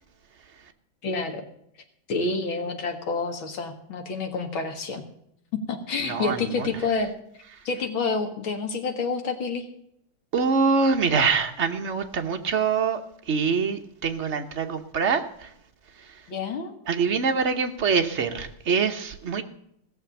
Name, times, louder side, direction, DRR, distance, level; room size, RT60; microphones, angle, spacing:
voice 1, 1.0-1.4 2.1-5.0 5.5-7.1 7.7-9.7 16.3-16.7, left 4 dB, 85° left, 4 dB, 2.5 m, -28 dB
voice 2, 6.0-6.7 10.3-13.0 13.3-15.5 16.9-19.4, right 5 dB, 45° right, 6 dB, 1.1 m, -24 dB
16.5 x 7.0 x 6.9 m, 0.73 s
omnidirectional pair, 2.1 m